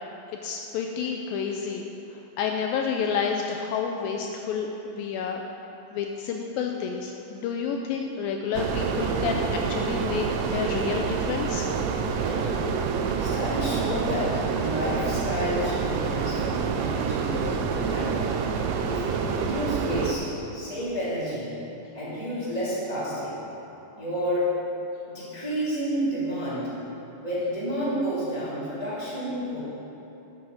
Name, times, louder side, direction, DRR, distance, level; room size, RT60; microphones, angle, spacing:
voice 1, 0.3-1.8 2.4-5.4 5.9-10.3 10.5-11.7, left 6 dB, 80° left, 2 dB, 2.2 m, -29 dB
sound 1, 8.5-20.1, right 6 dB, 80° right, 2.0 m, -27 dB
voice 2, 12.1-12.9 13.2-18.3 18.8-20.2 20.5-21.5 21.9-23.3 24.0-24.5 25.0-26.7 27.2-29.6, equal, 15° right, -11 dB, 1.8 m, -30 dB
12.0 x 8.4 x 4.0 m, 3.0 s
omnidirectional pair, 4.5 m